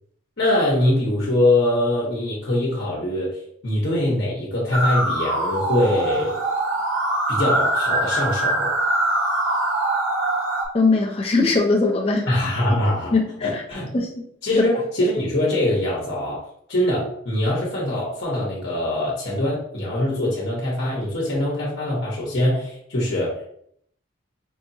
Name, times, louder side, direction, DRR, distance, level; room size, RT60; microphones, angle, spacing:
voice 1, 0.4-6.4 7.3-8.7 12.3-13.1 13.4-13.9 14.4-16.4 16.7-23.5, left 1 dB, 60° left, -5 dB, 1.0 m, -23 dB
sound 1, 4.7-10.6, right 2 dB, 80° right, 0.8 m, -23 dB
voice 2, 10.7-12.3 13.1-13.6 13.9-14.3 14.6-14.7, left 3 dB, 30° left, 1 dB, 0.6 m, -20 dB
4.7 x 2.9 x 2.7 m, 0.67 s
head